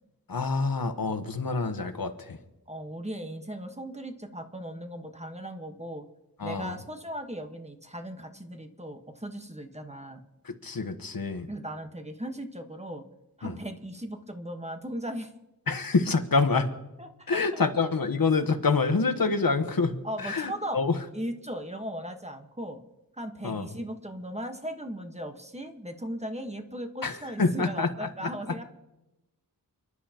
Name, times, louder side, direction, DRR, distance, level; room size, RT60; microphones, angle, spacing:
voice 1, 0.3-2.4 6.4-6.8 10.4-11.5 13.4-13.6 15.7-16.7 17.3-21.0 23.4-23.7 27.0-28.3, left 4 dB, 65° left, 7 dB, 1.2 m, -27 dB
voice 2, 2.7-6.0 6.4-10.2 11.5-13.0 13.4-15.3 17.0-17.6 20.0-20.8 21.1-22.8 23.2-28.6, equal, 15° right, 5 dB, 1.3 m, -37 dB
30.0 x 11.0 x 2.9 m, 0.95 s
wide cardioid pair, 80°, 37 cm